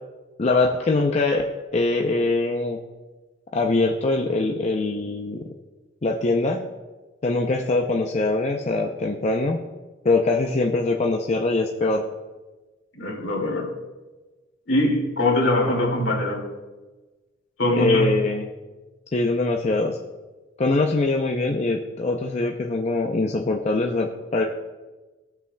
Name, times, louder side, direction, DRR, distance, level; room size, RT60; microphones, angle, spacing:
voice 1, 0.4-1.4 1.7-2.8 3.5-5.4 6.0-6.6 7.2-9.6 10.0-12.0 15.4-15.5 17.8-18.5 19.1-20.0 20.6-24.4, left 3 dB, 35° left, 1 dB, 0.5 m, -23 dB
voice 2, 12.9-13.7 14.7-16.5 17.6-18.2, left 1 dB, 70° left, -1 dB, 2.1 m, -22 dB
17.0 x 5.6 x 2.2 m, 1.2 s
head